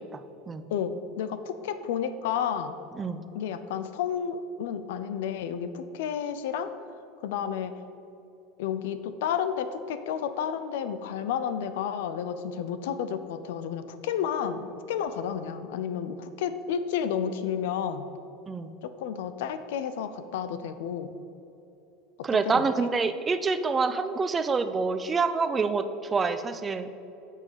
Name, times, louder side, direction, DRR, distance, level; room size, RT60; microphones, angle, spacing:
voice 1, 0.7-2.8 3.3-6.7 7.2-7.7 8.6-18.1 18.8-21.1 22.2-22.7, left 8 dB, 85° left, 11 dB, 0.7 m, -31 dB
voice 2, 22.2-26.9, right 4 dB, 20° right, 11 dB, 0.6 m, -27 dB
8.8 x 6.5 x 7.5 m, 2.9 s
supercardioid pair, 120°, 0 cm